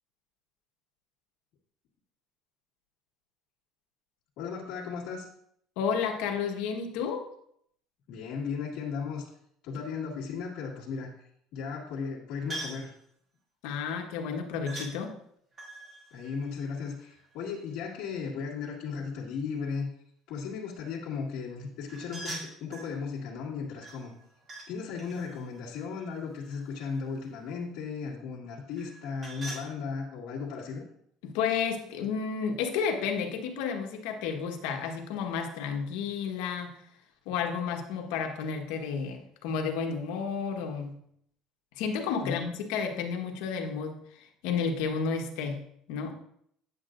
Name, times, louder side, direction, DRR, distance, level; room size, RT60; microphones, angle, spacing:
voice 1, 4.4-5.3 8.1-9.3 9.6-11.1 11.5-12.9 16.1-19.9 20.3-24.1 24.7-30.9 42.2-42.4, left 5 dB, 65° left, -7 dB, 1.9 m, -36 dB
voice 2, 5.8-7.3 13.6-15.1 31.2-36.8 37.2-41.0 41.8-45.6 45.9-46.1, left 6 dB, 85° left, 3 dB, 1.3 m, -31 dB
sound 1, 12.5-12.9 14.7-14.9 15.5-17.3 21.9-22.9 23.8-24.7 25.0-26.9 28.7-29.7, right 2 dB, 30° right, 2.5 m, -43 dB
8.8 x 8.5 x 2.6 m, 0.69 s
cardioid pair, 140°, 0 cm